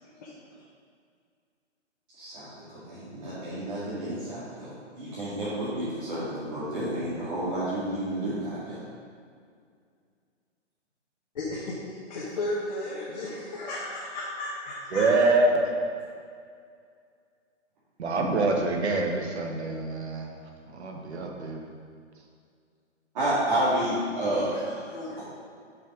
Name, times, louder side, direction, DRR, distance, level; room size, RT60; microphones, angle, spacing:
voice 1, 0.2-0.6 11.3-15.1 24.1-24.6 24.9-25.2, left 2 dB, 40° left, -7 dB, 1.5 m, -35 dB
voice 2, 2.1-8.8 23.1-25.2, right 1 dB, 35° right, -10 dB, 2.2 m, -30 dB
voice 3, 14.9-15.7 18.0-20.3 20.7-21.6, right 2 dB, 65° right, 1 dB, 1.5 m, -25 dB
7.5 x 5.6 x 5.1 m, 2.2 s
hypercardioid pair, 160°, 36 cm